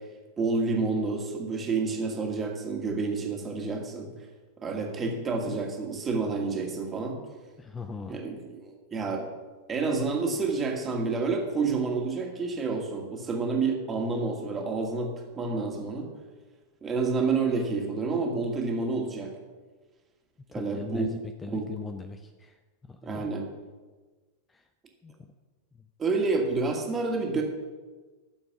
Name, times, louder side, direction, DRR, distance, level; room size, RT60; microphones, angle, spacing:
voice 1, 0.4-4.1 4.6-7.2 8.1-9.3 9.7-16.1 16.8-19.3 20.5-21.1 21.5-21.7 23.0-23.5 26.0-27.4, right 4 dB, 20° right, 1 dB, 2.2 m, -29 dB
voice 2, 7.6-8.2 20.6-22.5 22.9-23.3 24.5-24.6 25.0-25.1, left 5 dB, 15° left, 8 dB, 0.6 m, -39 dB
12.5 x 7.1 x 5.9 m, 1.3 s
figure-of-eight pair, 90°, 0 cm